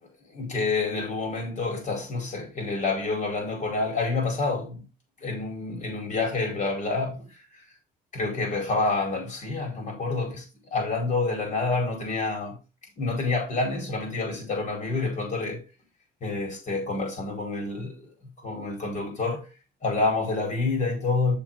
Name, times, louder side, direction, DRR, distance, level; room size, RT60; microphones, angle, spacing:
voice 1, 0.3-4.8 5.2-7.4 8.1-12.5 13.0-15.6 16.2-18.1 18.4-19.4 19.8-21.4, left 3 dB, 45° left, 4.9 m, -28 dB
7.4 x 7.0 x 3.8 m
cardioid pair, 110°, 17 cm